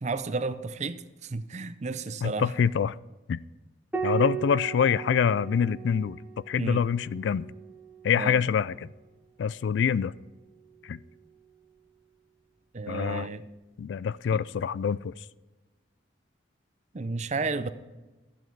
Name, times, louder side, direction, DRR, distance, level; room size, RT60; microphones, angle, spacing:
voice 1, 0.0-2.5 6.6-6.8 8.2-8.4 12.7-13.5 14.3-14.4 16.9-17.7, right 3 dB, 35° right, 0.5 m, -32 dB
voice 2, 2.2-2.9 3.3-3.4 4.0-6.2 6.5-7.5 8.0-8.9 9.4-10.1 10.8-11.0 12.9-13.3 13.8-15.1, left 7 dB, 70° left, 0.3 m, -25 dB
Piano, 3.9-8.8 10.4-11.2, right 9 dB, 10° right, 1.4 m, -37 dB
13.0 x 9.1 x 4.6 m
head